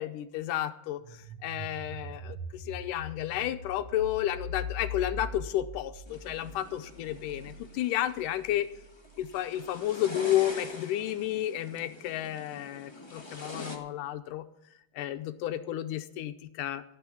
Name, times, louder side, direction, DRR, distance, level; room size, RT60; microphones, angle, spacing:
voice 1, 0.0-8.7 9.2-14.4 15.0-16.8, left 12 dB, 80° left, 10 dB, 2.2 m, -32 dB
sound 1, 1.0-9.7, left 2 dB, 45° right, 1.6 m, -42 dB
sound 2, 6.1-13.8, left 2 dB, 20° left, 0.6 m, -45 dB
17.0 x 6.3 x 8.3 m, 0.79 s
omnidirectional pair, 3.9 m